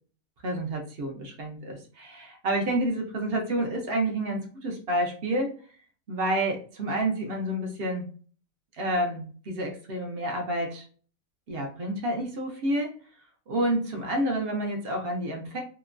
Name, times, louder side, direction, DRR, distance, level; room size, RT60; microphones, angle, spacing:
voice 1, 0.4-5.5 6.1-8.1 8.8-10.8 11.5-13.0 13.5-15.6, right 1 dB, 55° right, 2 dB, 0.7 m, -29 dB
2.9 x 2.1 x 2.4 m, 0.42 s
omnidirectional pair, 1.5 m